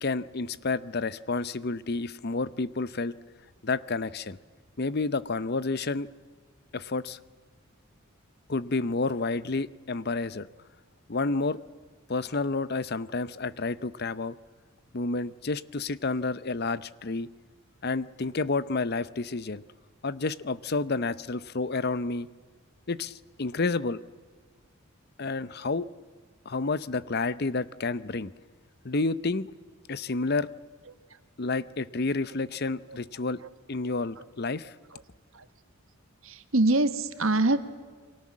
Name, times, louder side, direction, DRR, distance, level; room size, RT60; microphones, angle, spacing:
voice 1, 0.0-3.1 3.6-4.4 4.8-6.1 6.7-7.2 8.5-10.5 11.1-11.6 12.1-14.4 14.9-17.3 17.8-19.6 20.0-22.3 22.9-24.0 25.2-25.9 26.5-28.3 28.8-29.5 29.9-30.5 31.4-33.4 33.7-34.7, left 3 dB, 50° left, 17 dB, 0.7 m, -30 dB
voice 2, 36.2-37.6, right 2 dB, 70° right, 11 dB, 1.7 m, -25 dB
29.0 x 23.5 x 7.4 m, 1.5 s
head